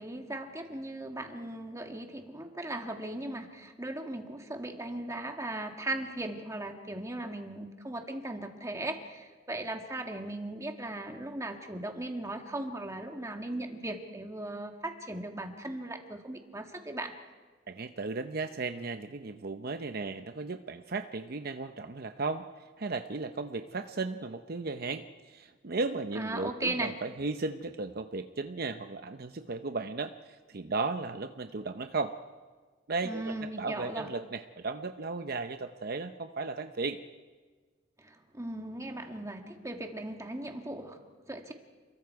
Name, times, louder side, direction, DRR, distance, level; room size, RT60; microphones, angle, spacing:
voice 1, 0.0-17.2 26.2-27.0 33.0-34.1 38.0-41.5, right 1 dB, 15° right, 4 dB, 1.9 m, -38 dB
voice 2, 17.7-22.5 22.8-32.1 32.9-37.0, right 3 dB, 50° right, 8 dB, 0.7 m, -35 dB
29.0 x 22.0 x 4.8 m, 1.4 s
head